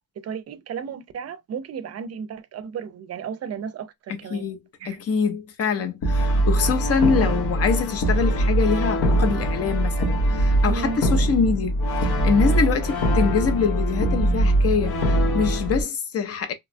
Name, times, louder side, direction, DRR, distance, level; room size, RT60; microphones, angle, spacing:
voice 1, 0.2-4.5 4.8-5.0 10.6-11.0, right 6 dB, 45° right, 0.5 m, -34 dB
voice 2, 4.1-4.6 4.8-16.5, left 6 dB, 40° left, 0.6 m, -25 dB
Brass instrument, 6.0-15.8, right 1 dB, 75° left, 1.0 m, -22 dB
2.9 x 2.2 x 2.5 m
cardioid pair, 155°, 37 cm